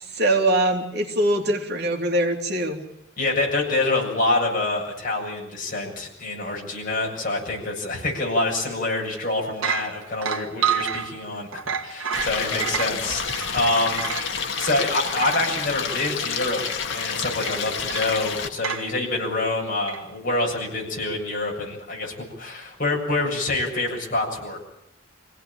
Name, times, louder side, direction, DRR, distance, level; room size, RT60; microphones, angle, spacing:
voice 1, 0.1-2.8, right 1 dB, 50° right, 3 dB, 3.0 m, -22 dB
voice 2, 3.2-13.2 13.5-16.6 16.9-24.6, left 2 dB, 40° left, 0 dB, 7.5 m, -26 dB
sound 1, 9.0-9.2 9.5-15.5 16.0-16.1 17.4-18.1 18.6-18.9 19.9-20.0, right 7 dB, 75° right, 1.7 m, -30 dB
Stream, 12.1-18.5, left 6 dB, 60° left, 2.1 m, -29 dB
26.0 x 17.5 x 8.8 m, 0.80 s
head